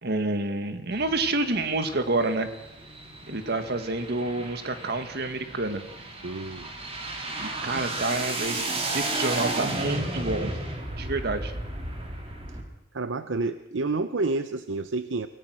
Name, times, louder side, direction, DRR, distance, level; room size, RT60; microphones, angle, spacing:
voice 1, 0.0-2.5 3.3-5.8 7.4-10.6 11.0-11.5, right 2 dB, 60° right, 8 dB, 1.9 m, -28 dB
sound 1, 0.9-12.6, right 2 dB, 35° right, 3.5 m, -34 dB
voice 2, 6.2-6.7 7.7-7.8 12.9-15.3, right 3 dB, 80° right, 11 dB, 0.8 m, -29 dB
25.0 x 17.0 x 6.3 m, 0.88 s
head